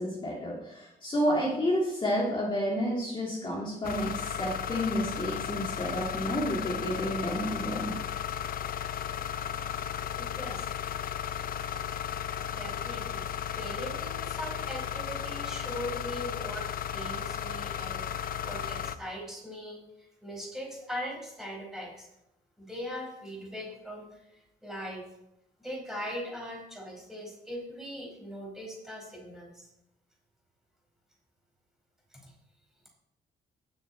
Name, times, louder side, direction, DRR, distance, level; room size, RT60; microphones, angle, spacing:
voice 1, 0.0-7.9, equal, 30° left, -4 dB, 2.5 m, -30 dB
sound 1, 3.8-19.0, left 9 dB, 55° left, 0.6 m, -35 dB
voice 2, 10.2-10.7 11.1-11.2 12.5-13.3 13.6-22.1 22.6-25.0 25.6-29.7 32.1-32.3, equal, ahead, -2 dB, 4.8 m, -40 dB
17.5 x 6.7 x 4.3 m, 0.86 s
cardioid pair, 145°, 17 cm